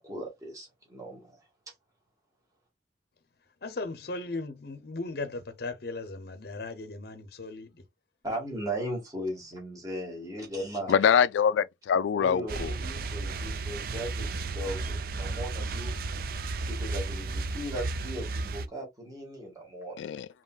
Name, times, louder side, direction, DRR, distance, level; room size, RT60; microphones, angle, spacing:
voice 1, 0.0-1.4 8.2-10.9 12.1-15.9 16.6-20.0, equal, 20° right, 1.8 m, -37 dB
voice 2, 3.6-7.8, left 3 dB, 55° left, 0.6 m, -37 dB
voice 3, 10.9-12.7 20.0-20.3, left 7 dB, 90° left, 0.3 m, -24 dB
sound 1, 12.5-18.7, right 3 dB, 55° right, 0.4 m, -33 dB
5.2 x 2.9 x 2.3 m
head